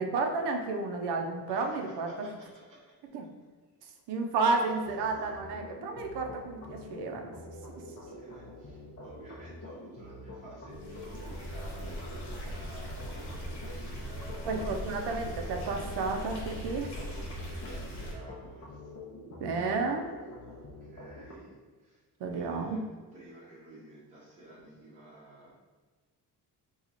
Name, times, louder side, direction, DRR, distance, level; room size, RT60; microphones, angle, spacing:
voice 1, 0.0-2.1 3.1-3.3 4.1-7.3 14.5-16.9 19.4-20.1 22.2-22.8, right 3 dB, 80° right, 3 dB, 0.6 m, -31 dB
voice 2, 1.4-2.9 4.4-4.7 7.6-13.5 14.0-15.2 16.9-18.9 20.5-22.0 22.3-22.8 23.1-25.5, right 1 dB, 20° right, -8 dB, 0.8 m, -52 dB
sound 1, 4.8-21.3, left 1 dB, 40° left, 0.6 m, -46 dB
sound 2, 10.7-18.1, equal, 75° left, 1.1 m, -40 dB
2.9 x 2.3 x 3.9 m, 1.4 s
cardioid pair, 135°, 40 cm